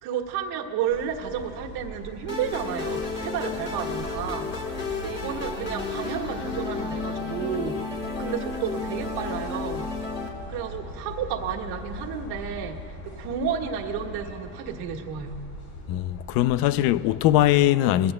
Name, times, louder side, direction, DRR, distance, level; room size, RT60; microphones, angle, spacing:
voice 1, 0.0-9.9 10.5-15.4, right 8 dB, 65° right, 1.7 m, -32 dB
sound 1, 0.9-17.6, left 1 dB, 90° left, 4.0 m, -40 dB
sound 2, 2.3-10.3, left 4 dB, 25° left, 3.5 m, -32 dB
voice 2, 15.9-18.1, left 13 dB, 55° left, 0.6 m, -21 dB
22.0 x 16.5 x 2.2 m
supercardioid pair, 95°, 43 cm